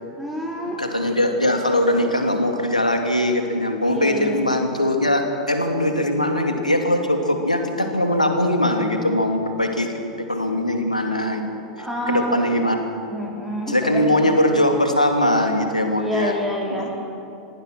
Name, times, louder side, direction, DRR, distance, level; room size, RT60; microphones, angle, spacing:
voice 1, 0.2-0.8 3.8-4.5 11.8-12.3 13.1-14.2 16.0-16.9, left 1 dB, 5° right, -3 dB, 3.4 m, -28 dB
voice 2, 0.8-9.9 10.3-11.4 12.1-12.8 13.7-16.4 16.7-16.9, left 1 dB, 90° left, 4 dB, 2.5 m, -21 dB
26.0 x 18.5 x 6.2 m, 2.7 s
figure-of-eight pair, 90°, 4 cm